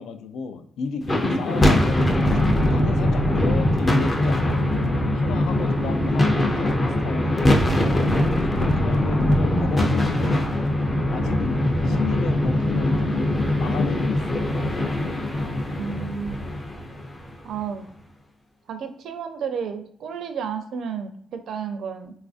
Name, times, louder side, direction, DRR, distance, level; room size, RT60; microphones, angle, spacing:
voice 1, 0.0-2.4 2.7-7.7 8.6-10.5 11.1-14.5, left 5 dB, 85° left, 8 dB, 0.4 m, -33 dB
sound 1, 1.0-17.4, left 1 dB, 15° left, 0.4 m, -22 dB
voice 2, 15.8-16.6 17.4-17.9 18.7-22.1, right 7 dB, 65° right, 7 dB, 0.4 m, -32 dB
3.9 x 2.4 x 2.4 m, 0.65 s
cardioid pair, 170°, 0 cm